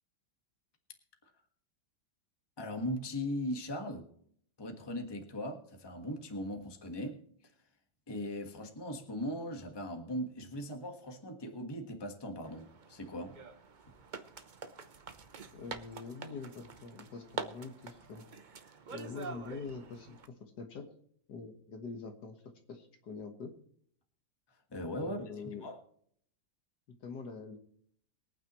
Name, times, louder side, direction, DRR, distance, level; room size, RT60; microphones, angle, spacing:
voice 1, 2.6-4.1 4.6-7.2 8.1-13.4 24.7-25.2 25.6-25.8, equal, 15° left, 4 dB, 1.3 m, -39 dB
sound 1, 12.4-20.3, right 5 dB, 50° right, 0.5 m, -46 dB
voice 2, 15.5-18.2 18.9-20.9 21.3-22.4 22.7-23.5 25.0-25.7 27.0-27.6, left 4 dB, 60° left, 5 dB, 1.9 m, -44 dB
23.0 x 9.1 x 3.1 m, 0.63 s
omnidirectional pair, 2.0 m